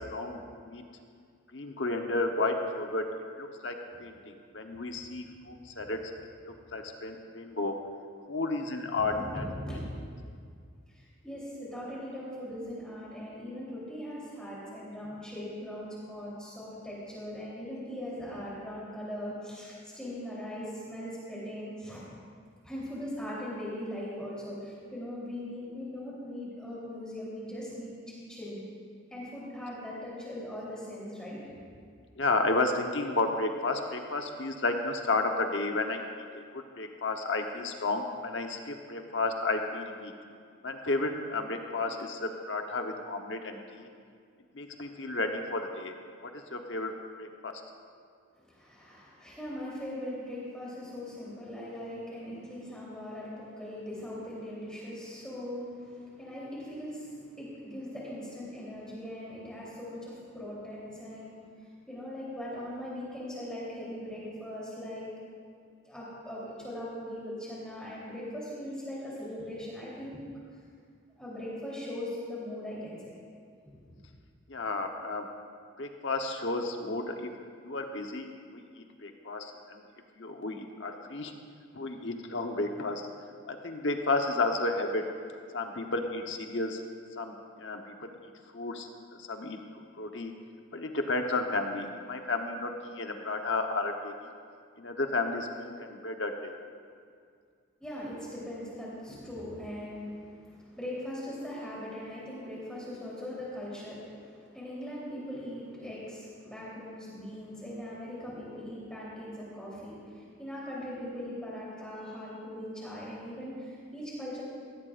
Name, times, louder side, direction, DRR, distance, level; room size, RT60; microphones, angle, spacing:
voice 1, 0.1-0.4 0.7-0.8 1.5-3.0 3.4-6.1 6.7-7.8 8.3-9.4 32.2-36.0 36.3-40.1 40.6-43.9 44.5-45.9 46.2-46.9 47.2-47.6 74.5-75.3 75.8-77.3 77.6-79.8 80.2-81.3 81.7-83.1 83.5-85.0 85.5-86.8 87.2-88.1 88.5-88.9 89.2-89.6 90.0-90.3 90.7-94.1 94.8-96.5, left 2 dB, 60° left, 4 dB, 1.1 m, -32 dB
voice 2, 9.0-9.8 10.3-10.4 10.9-22.0 22.6-28.0 28.3-28.6 29.1-31.6 48.4-61.4 61.9-65.1 65.8-70.2 71.2-73.1 73.7-74.0 97.8-114.4, left 1 dB, 5° left, -8 dB, 3.5 m, -40 dB
16.5 x 16.5 x 2.6 m, 2.2 s
head